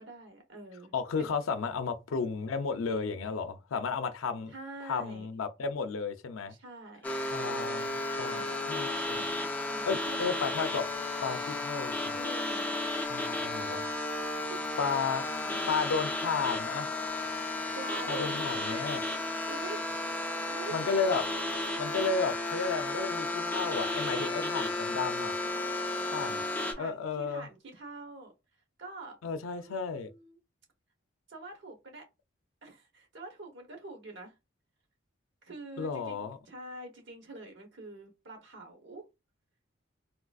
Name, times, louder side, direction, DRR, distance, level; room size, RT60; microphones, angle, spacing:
voice 1, 0.0-1.3 4.5-5.3 6.5-7.1 8.2-8.6 9.1-10.2 10.5-10.6 12.1-12.8 14.0-14.6 15.2-15.6 17.7-19.9 20.5-20.8 24.1-24.3 25.4-28.3 28.8-29.2 29.6-30.4 31.3-32.1 32.6-34.3 35.4-39.1, right 2 dB, 60° right, 1.0 m, -46 dB
voice 2, 0.9-4.5 4.8-6.6 7.3-8.4 8.7-9.2 9.9-10.9 11.2-12.2 13.1-13.8 14.8-15.3 15.7-16.9 18.1-19.0 20.7-21.3 21.8-25.3 26.1-26.4 26.8-27.5 29.2-30.1 35.8-36.4, left 5 dB, 85° left, 0.5 m, -33 dB
sound 1, 7.0-26.7, left 2 dB, 10° left, 0.4 m, -33 dB
3.7 x 2.5 x 2.3 m
head